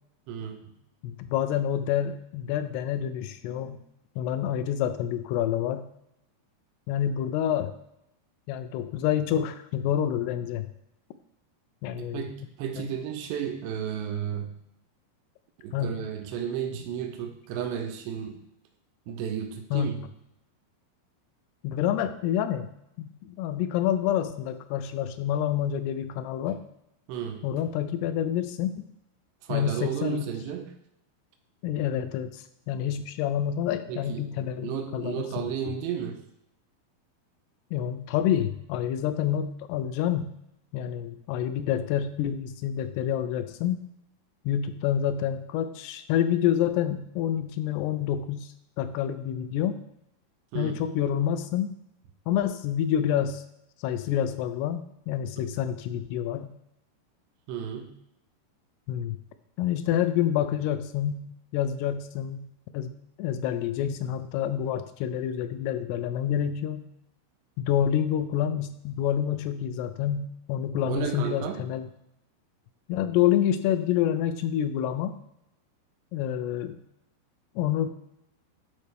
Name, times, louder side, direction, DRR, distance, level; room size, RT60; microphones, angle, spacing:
voice 1, 0.3-0.7 12.0-14.6 15.6-18.4 19.1-20.0 27.1-27.4 29.4-30.7 33.9-34.2 34.5-36.2 50.5-50.8 55.4-55.5 57.5-57.9 70.9-71.7, right 8 dB, 90° right, 5 dB, 2.9 m, -33 dB
voice 2, 1.0-3.8 4.2-5.9 6.9-7.7 8.5-10.7 11.8-12.2 15.7-16.0 19.7-19.9 21.6-22.7 23.2-26.6 27.4-28.9 29.5-30.3 31.6-35.4 37.7-40.3 40.7-43.8 44.5-48.5 48.8-49.8 50.6-51.7 52.3-53.4 53.8-56.5 58.9-59.2 59.6-61.2 61.5-62.5 62.7-66.9 67.6-71.9 72.9-75.1 76.1-76.8 77.6-77.9, left 10 dB, 85° left, 10 dB, 2.5 m, -28 dB
11.5 x 4.5 x 3.4 m, 0.81 s
omnidirectional pair, 4.9 m